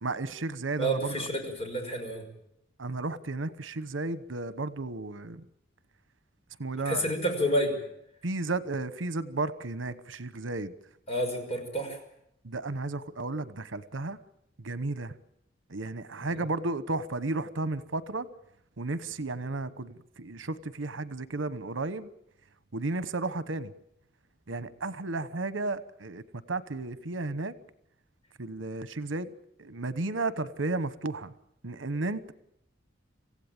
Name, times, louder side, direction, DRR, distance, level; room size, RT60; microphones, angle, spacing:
voice 1, 0.0-1.2 2.8-5.4 6.6-7.2 8.2-10.7 12.4-14.2 14.6-15.1 15.7-18.3 18.8-22.1 22.7-23.7 24.5-26.2 26.5-27.5 28.4-29.3 29.6-31.3 31.6-32.3, right 2 dB, 80° right, 15 dB, 1.1 m, -33 dB
voice 2, 0.8-2.2 6.9-7.7 11.1-12.0 16.2-16.4, equal, 30° left, 3 dB, 5.8 m, -29 dB
26.5 x 16.0 x 8.9 m, 0.78 s
head